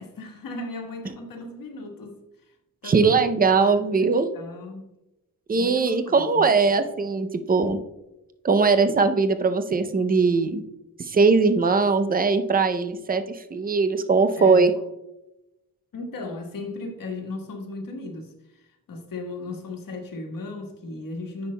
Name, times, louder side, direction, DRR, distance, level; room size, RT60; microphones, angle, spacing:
voice 1, 0.0-2.2 2.8-4.9 5.6-6.5 14.4-14.7 15.9-21.5, left 2 dB, 65° left, 1.4 m, -36 dB
voice 2, 2.8-4.3 5.5-7.8 8.4-10.6 11.0-14.7, right 4 dB, 25° right, 0.5 m, -20 dB
9.5 x 6.4 x 2.2 m
wide cardioid pair, 130°, 36 cm